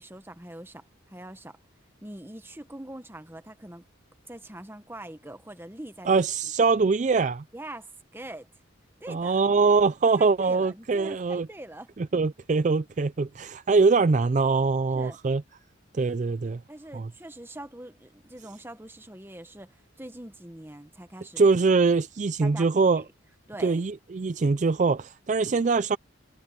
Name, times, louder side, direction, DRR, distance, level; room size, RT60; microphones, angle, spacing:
voice 1, 0.0-1.6 2.0-3.8 4.3-6.2 7.5-8.5 9.0-9.3 10.2-11.9 14.9-15.2 16.7-21.5 22.4-23.1 23.5-23.8, right 1 dB, 10° right, 1.2 m, -43 dB
voice 2, 6.1-7.4 9.1-11.5 12.0-15.4 15.9-16.6 16.9-17.1 21.4-23.0 23.6-26.0, right 4 dB, 35° right, 0.4 m, -23 dB
head